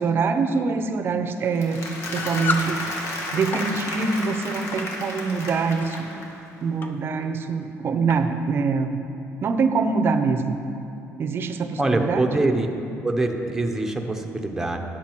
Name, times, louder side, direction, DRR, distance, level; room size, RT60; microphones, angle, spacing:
voice 1, 0.0-1.9 2.1-2.9 3.3-6.0 6.6-9.0 9.4-10.5 11.2-12.3, right 4 dB, 45° right, 8 dB, 0.6 m, -24 dB
Applause, 1.4-6.5, left 1 dB, 55° left, 1.5 m, -33 dB
sound 1, 2.1-2.7 3.3-3.7 4.7-4.9 5.6-6.0 6.8-6.9 7.2-7.3 8.1-8.3, left 4 dB, 40° left, 0.6 m, -29 dB
voice 2, 11.8-12.7 13.0-14.8, right 2 dB, 10° right, 3 dB, 0.8 m, -24 dB
10.0 x 7.3 x 4.5 m, 2.7 s
cardioid pair, 115°, 5 cm